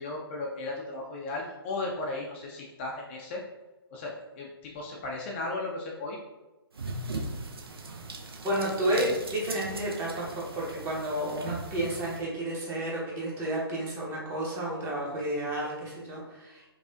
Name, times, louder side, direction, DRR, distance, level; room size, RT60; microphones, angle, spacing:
voice 1, 0.0-3.4 3.9-6.2, left 2 dB, 25° left, -2 dB, 0.5 m, -35 dB
sound 1, 6.7-12.2, right 2 dB, 65° right, 0.6 m, -39 dB
voice 2, 8.4-10.3 10.5-16.7, right 1 dB, 20° right, -4 dB, 1.0 m, -31 dB
5.1 x 2.4 x 2.4 m, 1.1 s
figure-of-eight pair, 125°, 13 cm